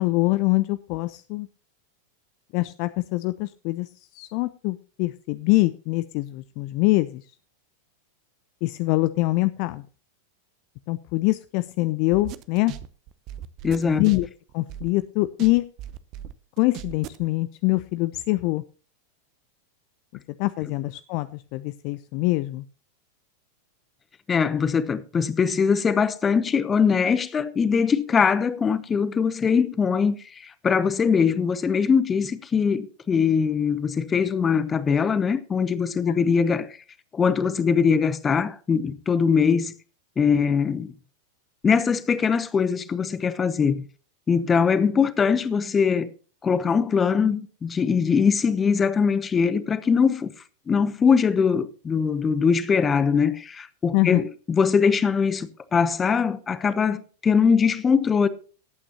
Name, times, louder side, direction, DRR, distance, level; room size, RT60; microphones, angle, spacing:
voice 1, 0.0-1.5 2.5-3.9 4.1-7.2 8.6-9.8 10.9-12.7 13.8-14.3 14.5-15.6 16.6-18.6 20.4-22.6 36.1-36.2 53.9-54.2, left 21 dB, 45° left, 0.4 m, -24 dB
sound 1, 12.1-15.0 15.4-17.3, right 11 dB, 40° right, 0.7 m, -38 dB
voice 2, 13.6-14.0 24.3-36.7 37.1-39.7 40.2-40.9 41.6-43.8 44.3-46.1 46.4-50.3 50.7-58.3, left 6 dB, 20° left, 0.9 m, -22 dB
18.0 x 8.7 x 2.9 m
figure-of-eight pair, 90°, 0 cm